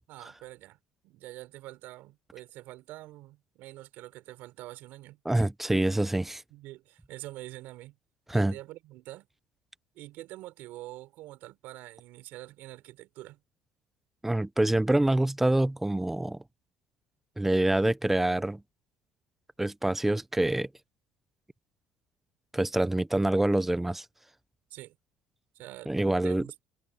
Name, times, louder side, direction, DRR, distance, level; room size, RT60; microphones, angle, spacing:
voice 1, 0.1-0.8 1.0-5.2 6.5-8.0 8.3-9.3 9.9-13.4 24.7-25.0 25.5-25.9 26.2-26.6, right 17 dB, 75° right, 4.6 m, -45 dB
voice 2, 5.3-6.4 8.3-8.5 14.2-16.4 17.4-18.6 19.6-20.7 22.5-24.0 25.9-26.5, right 1 dB, 5° right, 0.6 m, -26 dB
cardioid pair, 120°, 3 cm